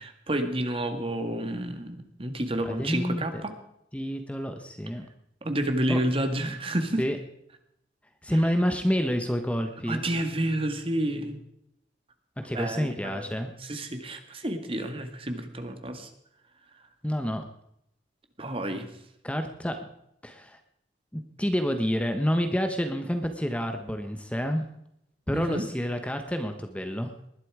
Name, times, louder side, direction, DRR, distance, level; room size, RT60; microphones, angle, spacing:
voice 1, 0.0-3.5 5.4-7.0 8.3-8.4 9.9-11.4 12.5-13.2 13.6-16.1 18.4-18.9 25.3-25.6, right 1 dB, 30° right, 7 dB, 1.8 m, -30 dB
voice 2, 2.6-3.2 3.9-5.1 5.9-6.0 6.4-6.5 7.0-7.2 8.2-10.1 12.4-13.5 17.0-17.4 19.2-19.8 20.2-20.6 21.1-24.6 25.3-27.1, equal, 5° left, 7 dB, 1.0 m, -28 dB
20.0 x 11.5 x 4.9 m, 0.78 s
head